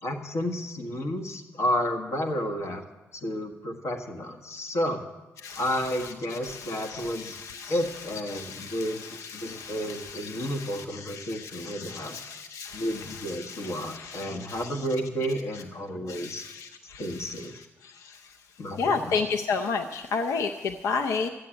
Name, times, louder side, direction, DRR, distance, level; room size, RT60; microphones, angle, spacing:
voice 1, 0.0-2.8 3.2-5.0 5.6-7.4 7.7-9.1 9.3-12.2 12.7-16.4 17.0-17.6 18.6-19.1, equal, 70° left, 4 dB, 1.5 m, -31 dB
voice 2, 6.3-7.7 8.3-14.7 16.1-17.1 17.8-18.2 18.8-21.3, left 5 dB, 85° left, 5 dB, 0.6 m, -33 dB
13.0 x 8.6 x 8.8 m, 1.1 s
cardioid pair, 70°, 5 cm